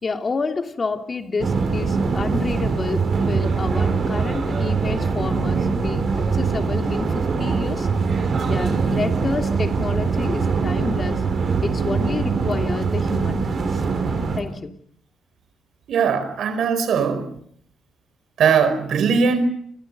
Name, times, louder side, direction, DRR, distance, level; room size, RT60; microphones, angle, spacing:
voice 1, 0.0-7.9 8.5-11.2 11.6-13.8 14.3-14.7, left 4 dB, 35° left, 5 dB, 3.0 m, -29 dB
sound 1, 1.4-14.4, right 4 dB, 50° right, 5.8 m, -22 dB
voice 2, 15.9-17.3 18.4-19.5, right 6 dB, 70° right, 12 dB, 4.7 m, -20 dB
29.5 x 26.0 x 5.5 m, 0.65 s
cardioid pair, 90°, 0 cm